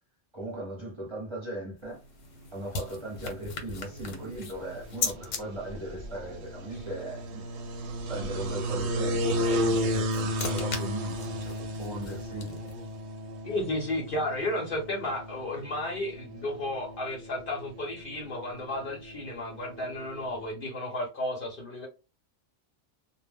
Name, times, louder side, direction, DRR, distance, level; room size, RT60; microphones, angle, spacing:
voice 1, 0.3-2.0 2.5-7.5 8.1-12.5, right 1 dB, 30° right, 0.7 m, -38 dB
sound 1, 1.8-5.4 9.6-12.9, left 5 dB, 85° left, 1.0 m, -38 dB
sound 2, 2.4-20.5, equal, 70° right, 0.8 m, -34 dB
voice 2, 13.4-21.9, left 1 dB, 55° left, 0.7 m, -33 dB
2.1 x 2.0 x 3.4 m
omnidirectional pair, 1.3 m